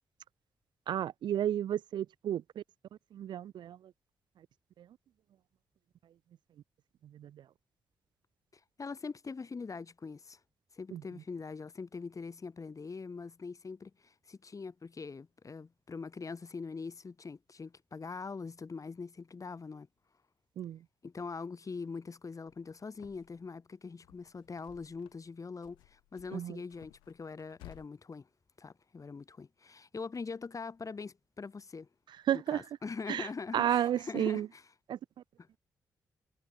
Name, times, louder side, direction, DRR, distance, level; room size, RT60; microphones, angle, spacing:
voice 1, 0.9-2.6 3.1-3.8 7.2-7.3 10.9-11.0 20.6-20.8 26.3-26.6 32.3-32.6 33.1-33.3 33.5-34.5 34.9-35.0, right 10 dB, 70° right, 0.5 m, -32 dB
voice 2, 8.8-10.4 10.7-19.9 21.0-28.3 28.6-31.9 32.3-34.7 35.4-35.5, left 4 dB, 45° left, 2.1 m, -43 dB
sound 1, 22.5-23.5 23.9-25.3 25.6-27.9, left 21 dB, 90° left, 6.5 m, -58 dB
hypercardioid pair, 40°, 8 cm